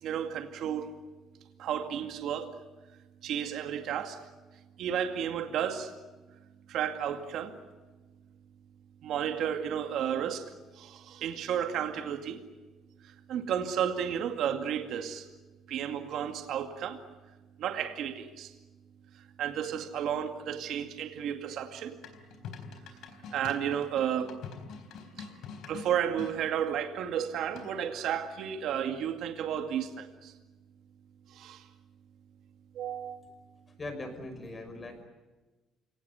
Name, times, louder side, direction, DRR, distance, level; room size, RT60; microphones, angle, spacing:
voice 1, 0.0-1.0 1.6-2.6 3.2-4.2 4.8-5.9 6.7-7.6 9.0-12.4 13.0-15.3 15.7-17.0 17.6-18.5 19.1-22.0 22.8-23.0 23.3-24.4 25.2-25.3 25.7-30.3 31.3-31.7 32.7-33.2, right 9 dB, 65° right, 2.2 m, -33 dB
sound 1, 22.0-26.3 27.5-28.0, left 6 dB, 70° left, 4.0 m, -45 dB
voice 2, 33.8-35.0, left 2 dB, 25° left, 5.8 m, -40 dB
29.5 x 19.0 x 9.5 m
cardioid pair, 140°, 0 cm